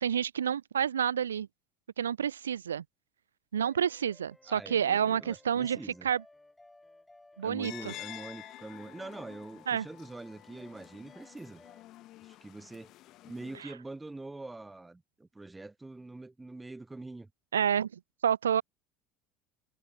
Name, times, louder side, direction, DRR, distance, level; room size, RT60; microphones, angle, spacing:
voice 1, 0.0-1.5 2.0-2.8 3.5-6.2 7.4-7.9 9.7-9.9 13.6-13.7 17.5-18.6, right 8 dB, 90° right, 0.5 m, -29 dB
sound 1, 3.6-11.8, left 2 dB, 10° left, 3.0 m, -59 dB
voice 2, 4.5-6.1 7.4-11.6 12.2-12.9 13.2-17.3, right 2 dB, 15° right, 0.9 m, -44 dB
sound 2, 7.6-13.6, left 16 dB, 55° left, 4.2 m, -49 dB
hypercardioid pair, 70°, 0 cm